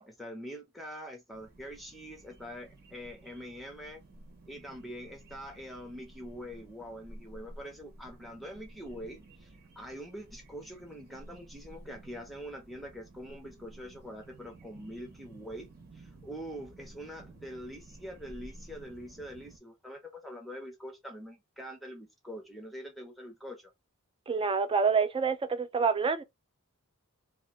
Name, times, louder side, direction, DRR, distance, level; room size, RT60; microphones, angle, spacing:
voice 1, 0.0-4.0 4.5-15.7 15.9-23.7, equal, ahead, 0.7 m, -44 dB
sound 1, 1.3-19.6, right 1 dB, 45° right, 1.2 m, -53 dB
voice 2, 24.3-26.2, right 5 dB, 25° right, 0.4 m, -27 dB
2.9 x 2.4 x 4.2 m
head